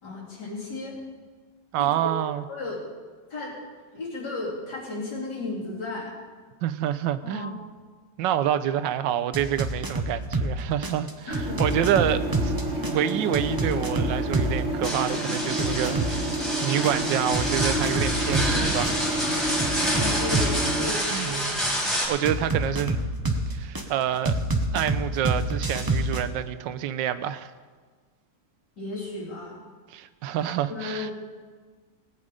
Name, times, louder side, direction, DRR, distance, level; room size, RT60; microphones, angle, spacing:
voice 1, 0.0-1.0 1.8-2.8 3.3-3.6 3.9-6.1 7.2-7.5 11.3-11.7 15.3-15.4 19.9-21.6 28.8-29.6 30.5-31.1, left 3 dB, 65° left, 3.9 m, -34 dB
voice 2, 1.7-2.4 6.6-7.7 8.2-12.5 12.8-16.3 16.6-19.1 21.1-21.6 22.1-23.0 23.5-24.3 24.7-27.5 29.9-31.1, right 11 dB, 85° right, 1.3 m, -27 dB
sound 1, 9.3-10.5 10.8-14.5 14.8-18.5 18.8-20.6 22.2-23.8 24.2-26.2, right 2 dB, 20° right, 0.6 m, -27 dB
sound 2, 11.3-20.9, right 1 dB, 45° right, 1.9 m, -30 dB
sound 3, 14.8-22.1, equal, ahead, 2.9 m, -28 dB
18.0 x 8.6 x 5.0 m
omnidirectional pair, 1.9 m